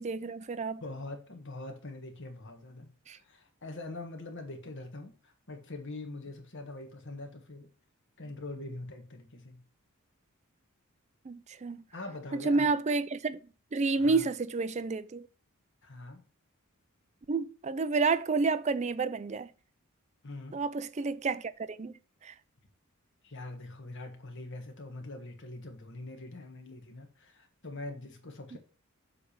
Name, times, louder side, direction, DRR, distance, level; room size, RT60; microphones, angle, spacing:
voice 1, 0.0-0.8 3.1-3.2 11.3-11.8 12.3-13.4 13.7-15.3 17.3-19.5 20.5-21.9 22.2-22.3 28.5-28.6, right 4 dB, 30° right, 0.4 m, -30 dB
voice 2, 0.8-7.7 8.2-9.6 11.9-12.7 14.0-14.2 15.8-16.2 20.2-20.6 23.2-28.6, left 2 dB, 55° left, 1.5 m, -43 dB
7.7 x 3.4 x 5.7 m
head